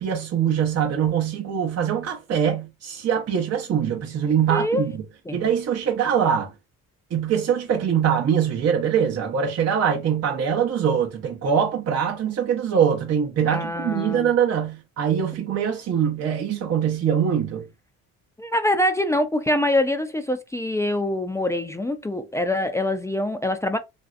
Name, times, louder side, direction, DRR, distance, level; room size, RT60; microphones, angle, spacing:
voice 1, 0.0-4.9 5.3-6.5 7.1-17.7, right 8 dB, 55° right, 0.8 m, -23 dB
voice 2, 4.5-4.9 5.3-5.4 13.5-14.3 18.4-23.8, left 1 dB, 10° left, 0.4 m, -24 dB
3.2 x 2.5 x 2.4 m
cardioid pair, 90°, 30 cm